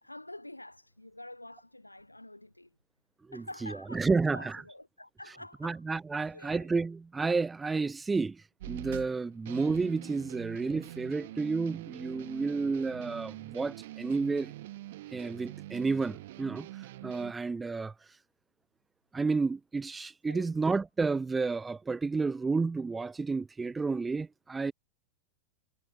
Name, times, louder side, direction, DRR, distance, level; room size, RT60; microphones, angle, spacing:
voice 1, 0.0-2.7 3.3-5.8 6.2-6.7 20.3-20.5, left 1 dB, 85° left, 1.0 m, -47 dB
voice 2, 3.3-4.6 5.6-8.4 8.7-14.5 15.1-16.7 17.0-17.9 19.1-24.7, right 4 dB, 10° right, 0.6 m, -31 dB
sound 1, 8.6-17.3, right 16 dB, 55° right, 1.2 m, -45 dB
figure-of-eight pair, 90°, 0 cm